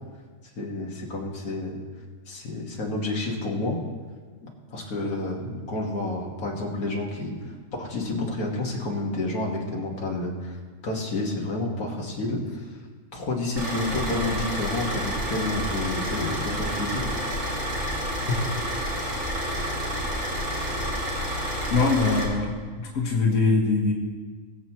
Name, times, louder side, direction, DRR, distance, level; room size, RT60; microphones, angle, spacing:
voice 1, 0.6-1.8 2.3-3.8 4.4-7.4 7.8-10.6 10.8-12.6 13.1-17.0 18.3-18.4, left 2 dB, 85° left, -1 dB, 2.2 m, -29 dB
Car / Idling, 13.6-22.2, equal, 60° right, 2.7 m, -29 dB
voice 2, 21.7-23.9, left 3 dB, 60° left, -2 dB, 1.7 m, -23 dB
21.0 x 7.7 x 3.1 m, 1.5 s
omnidirectional pair, 1.5 m